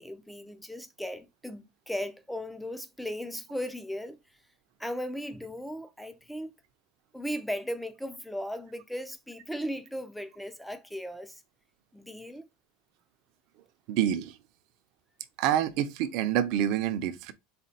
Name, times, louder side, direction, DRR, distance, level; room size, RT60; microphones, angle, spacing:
voice 1, 0.0-4.2 4.8-6.5 7.1-11.4 11.9-12.4, equal, ahead, 0.4 m, -37 dB
voice 2, 13.9-14.4 15.4-17.3, right 10 dB, 50° right, 0.6 m, -27 dB
4.2 x 2.3 x 4.1 m
supercardioid pair, 160°, 0 cm